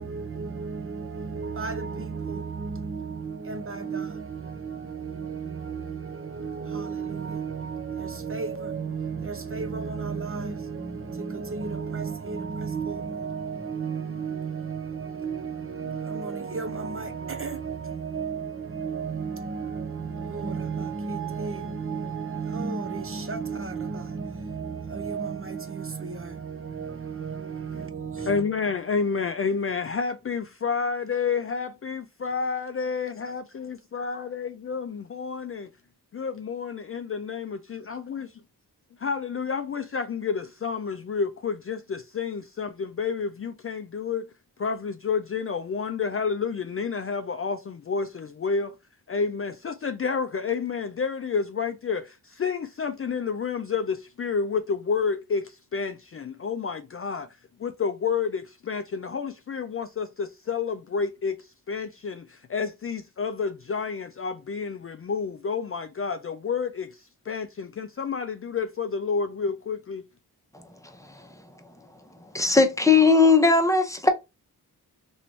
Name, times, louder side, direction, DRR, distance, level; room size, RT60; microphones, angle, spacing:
voice 1, 0.0-28.4, right 5 dB, 35° right, 0.6 m, -33 dB
voice 2, 28.2-35.7 36.1-38.3 39.0-44.2 44.6-48.8 49.1-57.3 57.6-70.0, left 5 dB, 35° left, 0.4 m, -30 dB
voice 3, 72.3-74.1, left 4 dB, 10° left, 0.8 m, -18 dB
3.1 x 3.0 x 2.7 m
cardioid pair, 45°, 40 cm